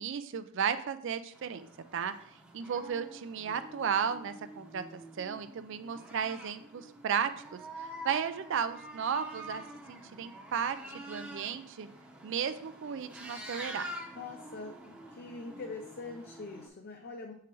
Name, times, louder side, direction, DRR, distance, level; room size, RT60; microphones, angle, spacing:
voice 1, 0.0-1.7 1.9-2.1 2.5-7.3 7.8-10.8 11.1-11.9 12.2-13.9, right 7 dB, 60° right, 11 dB, 0.4 m, -34 dB
sound 1, 1.3-16.7, right 1 dB, 5° right, 0.8 m, -47 dB
voice 2, 14.1-17.3, left 3 dB, 50° left, 3 dB, 0.5 m, -43 dB
7.1 x 4.8 x 3.0 m, 0.66 s
head